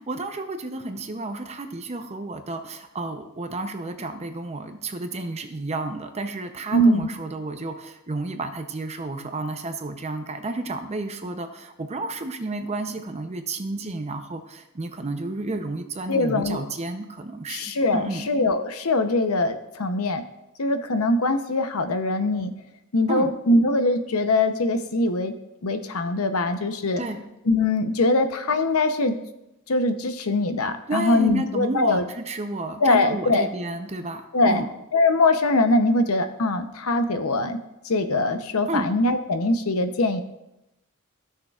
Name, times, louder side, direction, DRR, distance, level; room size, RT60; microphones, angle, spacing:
voice 1, 0.0-18.3 23.1-23.3 27.0-27.2 30.9-34.7 38.7-38.9, right 2 dB, 30° right, 7 dB, 0.6 m, -31 dB
voice 2, 6.7-7.1 16.1-16.6 17.5-20.2 20.6-22.5 22.9-25.3 25.6-27.0 27.5-29.2 29.7-32.0 32.8-33.5 34.3-34.6 34.9-37.6 37.8-40.2, left 2 dB, 70° left, 9 dB, 0.7 m, -22 dB
15.0 x 6.5 x 2.4 m, 0.90 s
head